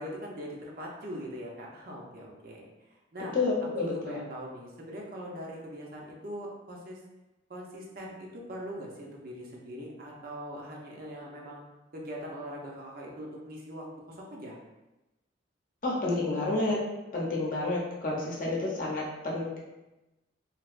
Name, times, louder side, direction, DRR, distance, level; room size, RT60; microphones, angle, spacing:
voice 1, 0.0-2.6 2.9-3.4 3.7-7.0 7.5-11.6 11.9-14.6, equal, 50° right, -2 dB, 0.6 m, -41 dB
voice 2, 3.3-4.2 15.8-16.8 17.1-19.6, left 2 dB, 45° left, -4 dB, 0.7 m, -30 dB
3.3 x 2.8 x 2.5 m, 1.0 s
head